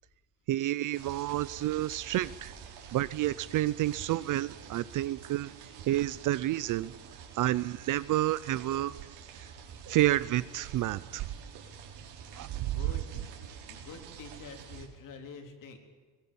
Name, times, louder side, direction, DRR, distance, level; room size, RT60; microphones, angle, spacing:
voice 1, 0.5-2.5 2.9-5.5 5.9-6.9 7.4-8.9 9.9-11.2 12.4-12.7, right 15 dB, 45° right, 18 dB, 0.6 m, -29 dB
sound 1, 0.9-14.9, right 7 dB, 60° right, 4.0 m, -48 dB
voice 2, 12.5-13.3 13.6-15.8, left 5 dB, 45° left, 4 dB, 3.9 m, -47 dB
23.0 x 21.0 x 7.1 m, 1.4 s
cardioid pair, 150°, 44 cm